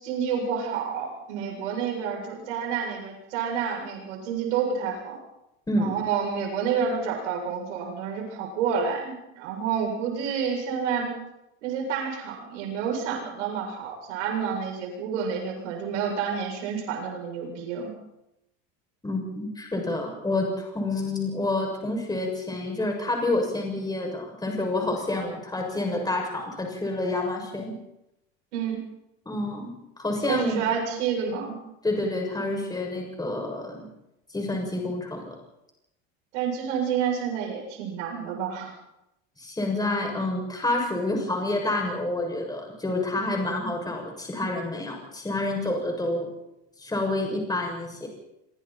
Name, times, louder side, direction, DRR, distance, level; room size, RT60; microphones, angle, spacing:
voice 1, 0.0-5.2 5.8-11.1 11.6-17.9 28.5-28.8 30.3-31.6 36.3-38.7, right 7 dB, 80° right, 0 dB, 7.6 m, -29 dB
voice 2, 19.0-27.7 29.2-29.7 30.0-30.7 31.8-33.9 34.3-35.3 39.4-46.3 46.8-48.1, left 2 dB, 10° left, 1 dB, 6.7 m, -28 dB
26.5 x 24.0 x 4.4 m, 0.87 s
supercardioid pair, 100°, 35 cm